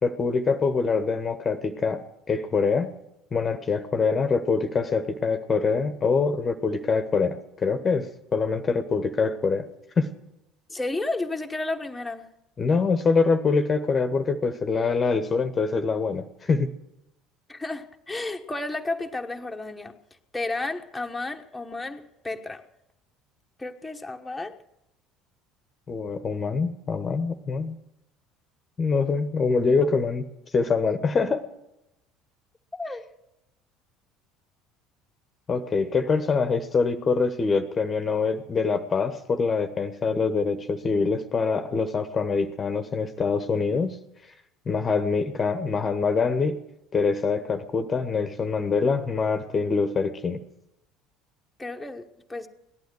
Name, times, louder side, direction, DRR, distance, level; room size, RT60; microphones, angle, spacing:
voice 1, 0.0-2.9 3.3-9.7 10.0-10.1 12.6-16.7 25.9-27.7 28.8-30.2 30.5-31.4 35.5-44.0 44.7-46.6 46.9-50.4, left 4 dB, 30° left, 1.1 m, -24 dB
voice 2, 10.7-12.3 17.5-19.9 20.3-22.6 23.6-24.6 29.8-29.9 32.7-33.0 51.6-52.5, left 2 dB, 10° left, 1.2 m, -32 dB
18.0 x 12.0 x 6.3 m
figure-of-eight pair, 60°, 0 cm